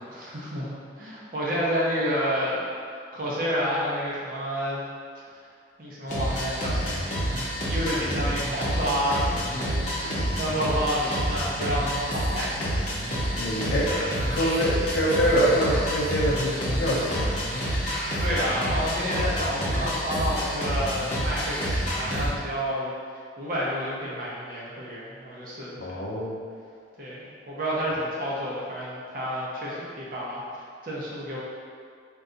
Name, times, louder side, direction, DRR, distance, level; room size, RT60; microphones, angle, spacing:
voice 1, 0.1-2.6 3.1-4.8 5.8-7.1 7.7-12.8 18.2-22.9 23.4-26.0 27.0-31.4, equal, 50° right, -6 dB, 0.5 m, -30 dB
sound 1, 6.1-22.3, equal, 40° left, 0.7 m, -28 dB
voice 2, 13.4-13.9 14.3-17.3 25.8-26.4, equal, 70° left, -7 dB, 0.4 m, -25 dB
2.7 x 2.2 x 3.7 m, 2.2 s
head